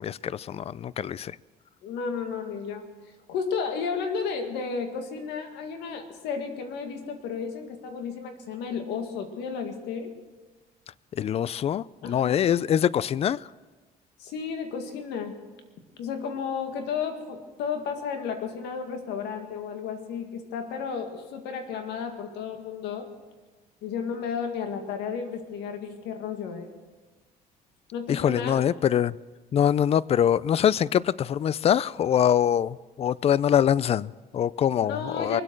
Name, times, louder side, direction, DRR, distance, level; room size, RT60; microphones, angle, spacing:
voice 1, 0.0-1.4 11.1-13.5 28.1-29.2 29.5-35.4, left 9 dB, 35° left, 0.4 m, -24 dB
voice 2, 1.8-2.8 3.3-10.1 12.0-12.4 14.2-15.4 16.0-23.1 23.8-26.8 27.9-28.6 34.8-35.4, left 6 dB, 85° left, 2.0 m, -33 dB
23.0 x 8.4 x 6.4 m
cardioid pair, 110°, 17 cm